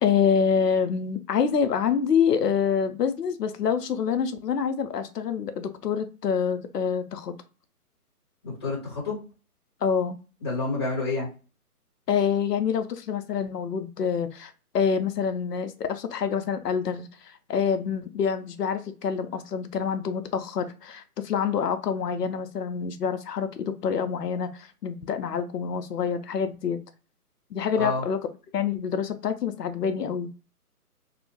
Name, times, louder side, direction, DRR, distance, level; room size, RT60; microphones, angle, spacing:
voice 1, 0.0-7.3 9.8-10.2 12.1-26.8 27.5-28.2 28.5-30.3, left 7 dB, 85° left, 8 dB, 0.6 m, -26 dB
voice 2, 8.4-9.2 10.4-11.3 27.8-28.0, left 3 dB, 15° left, -5 dB, 0.8 m, -28 dB
2.7 x 2.1 x 2.7 m, 0.34 s
figure-of-eight pair, 155°, 47 cm